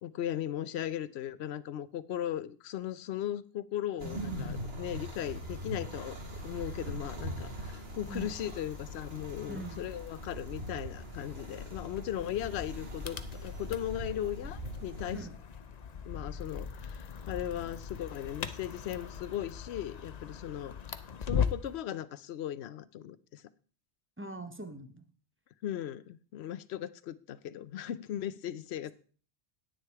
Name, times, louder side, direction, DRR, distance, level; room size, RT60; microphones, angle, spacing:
voice 1, 0.0-6.2 6.4-15.3 16.1-20.7 21.2-23.4 25.6-28.9, left 11 dB, 70° left, 17 dB, 0.9 m, -37 dB
sound 1, 4.0-15.2, right 1 dB, 60° right, 2.1 m, -42 dB
sound 2, 8.0-21.8, left 7 dB, 45° left, 0.7 m, -40 dB
voice 2, 9.5-9.9 15.1-15.3 24.2-25.0, right 2 dB, 10° right, 8 dB, 1.0 m, -42 dB
9.7 x 9.5 x 4.7 m, 0.41 s
omnidirectional pair, 1.2 m